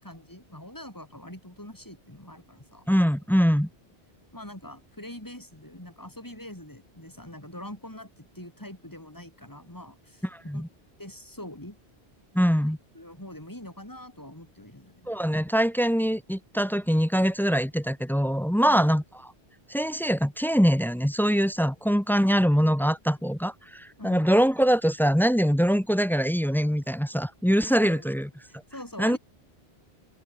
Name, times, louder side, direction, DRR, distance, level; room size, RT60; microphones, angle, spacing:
voice 1, 0.0-2.9 4.3-10.2 10.5-10.6 11.0-11.8 12.9-15.1 18.6-18.9 24.0-24.4 27.7-28.1 28.5-29.2, left 1 dB, 20° left, 5.1 m, -43 dB
voice 2, 2.9-3.7 10.3-10.7 12.3-12.8 15.1-19.0 19.7-28.3 29.0-29.2, equal, 5° left, 0.5 m, -23 dB
open air
omnidirectional pair, 1.1 m